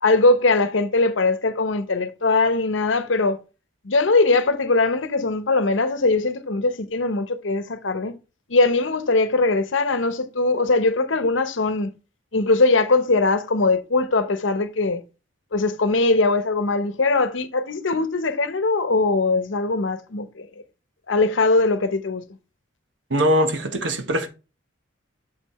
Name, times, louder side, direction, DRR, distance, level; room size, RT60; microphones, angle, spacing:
voice 1, 0.0-3.4 3.8-8.1 8.5-11.9 12.3-15.0 15.5-20.5 21.1-22.2, left 3 dB, 80° left, 0.9 m, -21 dB
voice 2, 23.1-24.3, equal, 70° right, 1.1 m, -21 dB
7.2 x 5.6 x 3.1 m
head